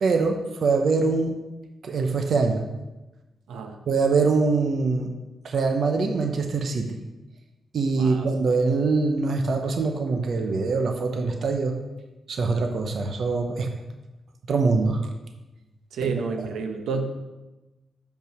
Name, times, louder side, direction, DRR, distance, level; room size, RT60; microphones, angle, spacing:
voice 1, 0.0-1.3 1.8-2.7 3.9-5.1 5.4-7.0 7.7-11.7 12.3-13.7 14.5-15.0 16.0-16.1, right 4 dB, 55° right, 5 dB, 0.8 m, -23 dB
voice 2, 7.9-8.3 15.9-17.0, right 5 dB, 85° right, 5 dB, 0.9 m, -29 dB
6.9 x 5.5 x 6.1 m, 1.1 s
cardioid pair, 120°, 0 cm